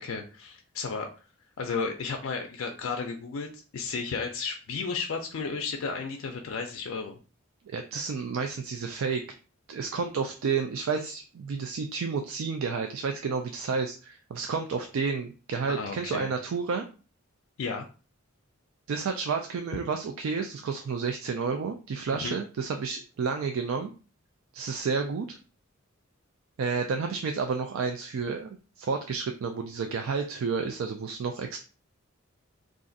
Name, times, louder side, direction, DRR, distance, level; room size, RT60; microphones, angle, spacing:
voice 1, 0.0-1.1 1.6-7.2 15.7-16.3 17.6-17.9 22.2-22.4, left 4 dB, 70° left, 3 dB, 0.4 m, -33 dB
voice 2, 7.7-9.2 9.7-16.9 18.9-23.9 24.5-25.4 26.6-31.6, right 5 dB, 70° right, 5 dB, 0.3 m, -31 dB
2.5 x 2.4 x 3.8 m, 0.35 s
head